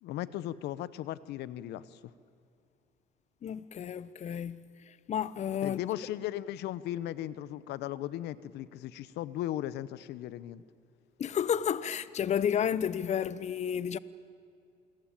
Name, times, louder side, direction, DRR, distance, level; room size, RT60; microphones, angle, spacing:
voice 1, 0.0-2.0 5.6-10.6, left 13 dB, 80° left, 0.9 m, -37 dB
voice 2, 3.4-5.8 11.2-14.0, left 8 dB, 40° left, 0.8 m, -31 dB
28.0 x 23.0 x 9.0 m
cardioid pair, 110°, 17 cm